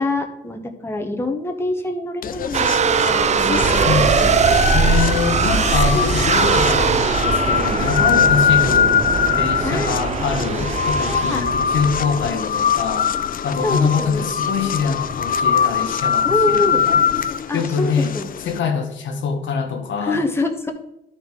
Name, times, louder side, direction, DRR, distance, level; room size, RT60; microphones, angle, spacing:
voice 1, 0.0-3.9 4.2-4.8 9.6-9.9 10.9-11.5 13.6-14.3 16.2-16.8 17.5-18.4 20.0-20.7, left 2 dB, 10° left, 3 dB, 1.1 m, -26 dB
sound 1, 2.2-18.6, left 8 dB, 45° left, 0.5 m, -22 dB
sound 2, 2.5-11.4, right 7 dB, 35° right, 0.4 m, -21 dB
sound 3, 3.5-12.3, right 2 dB, 15° right, 2.7 m, -27 dB
voice 2, 4.7-9.0 9.4-13.1 13.4-17.0 17.5-18.1 18.4-20.2, left 5 dB, 70° left, 4 dB, 1.3 m, -24 dB
11.5 x 4.3 x 4.8 m, 0.86 s
cardioid pair, 90°, 20 cm